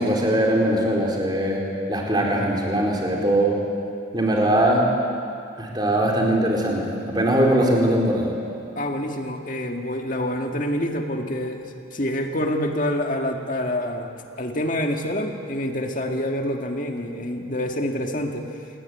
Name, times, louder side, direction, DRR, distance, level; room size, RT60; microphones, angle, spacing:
voice 1, 0.0-3.6 4.1-4.9 5.6-8.3, right 1 dB, 20° right, -2 dB, 4.4 m, -21 dB
voice 2, 8.8-18.6, left 1 dB, 40° left, 3 dB, 2.0 m, -27 dB
27.0 x 20.0 x 9.3 m, 2.4 s
head